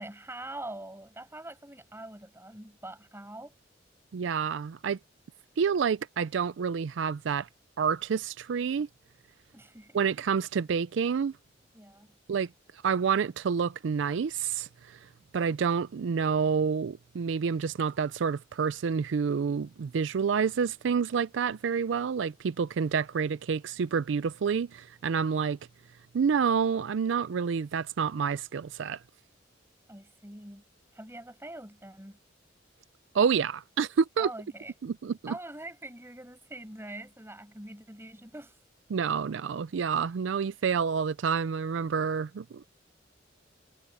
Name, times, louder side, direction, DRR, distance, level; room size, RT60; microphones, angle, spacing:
voice 1, 0.0-3.5 9.5-10.1 11.7-12.1 29.9-30.6 30.9-32.2 34.2-34.7 35.3-38.6, right 1 dB, 15° right, 6.1 m, -44 dB
voice 2, 4.1-5.0 5.6-7.5 7.8-8.9 9.9-11.3 12.3-12.5 12.8-15.0 15.3-25.6 26.1-29.0 33.1-34.3 34.8-35.3 38.9-42.7, right 6 dB, 75° right, 0.4 m, -28 dB
head